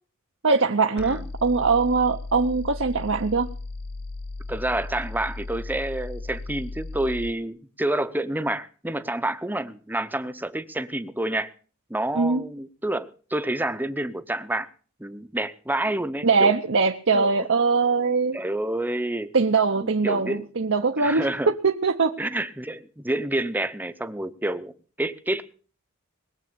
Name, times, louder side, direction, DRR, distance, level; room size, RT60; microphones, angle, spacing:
voice 1, 0.4-3.5 12.1-12.4 16.2-18.4 19.3-22.1, right 4 dB, 60° right, 0.8 m, -22 dB
sound 1, 1.0-7.4, left 2 dB, 45° left, 0.9 m, -36 dB
voice 2, 4.5-11.5 11.9-14.7 15.0-16.5 17.1-17.5 18.3-19.3 19.8-20.4 21.0-21.5 22.2-25.4, right 1 dB, 10° right, 0.8 m, -28 dB
21.0 x 7.6 x 6.9 m
head